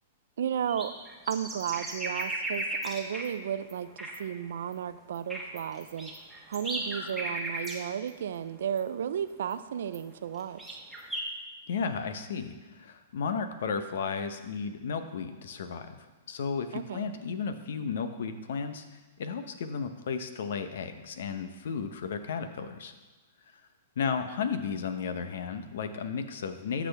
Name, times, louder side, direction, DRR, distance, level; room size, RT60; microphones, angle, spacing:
voice 1, 0.4-0.9 1.3-6.1 6.5-10.8 16.7-17.1, right 9 dB, 75° right, 13 dB, 0.5 m, -33 dB
sound 1, 0.7-3.3 3.7-3.8 4.0-4.2 4.7-4.8 5.1-7.8 8.1-8.2 8.8-8.9 9.5-9.6 9.9-10.0 10.4-11.2, right 1 dB, ahead, 1.4 m, -35 dB
voice 2, 11.7-16.0 16.3-18.8 19.2-22.9 24.0-26.9, left 6 dB, 75° left, 9 dB, 0.8 m, -34 dB
14.0 x 6.1 x 3.4 m, 1.2 s
hypercardioid pair, 140°, 0 cm